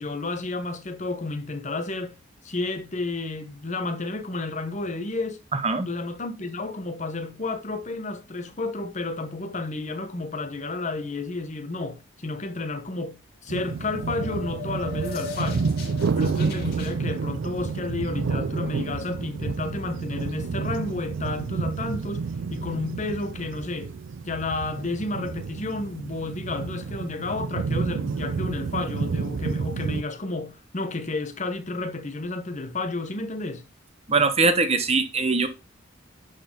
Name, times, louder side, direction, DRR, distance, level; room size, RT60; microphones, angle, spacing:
voice 1, 0.0-2.1 2.4-5.4 5.8-15.7 16.2-23.9 24.3-33.6, left 3 dB, 35° left, 1.0 m, -31 dB
voice 2, 5.5-5.9 34.1-35.5, right 3 dB, 30° right, 1.0 m, -22 dB
sound 1, 13.5-30.0, right 5 dB, 70° right, 0.4 m, -30 dB
sound 2, 13.7-16.9, left 5 dB, 55° left, 3.9 m, -38 dB
11.0 x 4.2 x 3.8 m
head